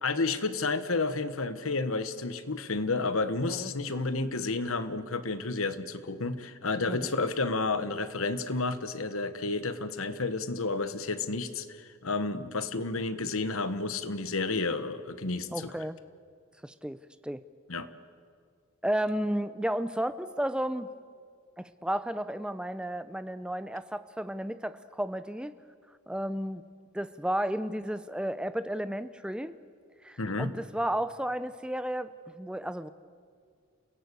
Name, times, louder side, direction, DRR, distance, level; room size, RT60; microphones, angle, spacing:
voice 1, 0.0-15.7 17.7-17.9 30.2-30.5, left 3 dB, 75° left, 12 dB, 1.2 m, -31 dB
voice 2, 15.5-16.0 16.6-17.0 17.2-17.4 18.8-20.9 21.6-25.5 26.1-26.6 26.9-29.5 30.0-32.1 32.3-32.9, right 1 dB, 5° right, 13 dB, 0.6 m, -32 dB
29.0 x 16.5 x 8.4 m, 2.1 s
head